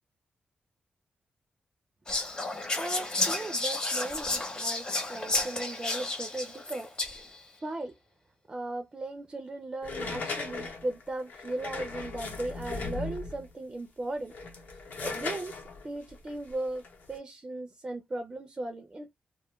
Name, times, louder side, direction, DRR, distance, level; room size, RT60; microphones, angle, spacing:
Whispering, 2.1-7.4, left 2 dB, 25° left, 0.7 m, -32 dB
voice 1, 2.8-6.9 7.6-7.9 8.5-14.3 15.0-15.6 15.8-16.8 17.1-19.1, right 2 dB, 25° right, 0.4 m, -37 dB
sound 1, 9.8-13.5 14.2-17.2, left 3 dB, 70° left, 0.7 m, -38 dB
2.2 x 2.1 x 2.9 m
wide cardioid pair, 125°, 3 cm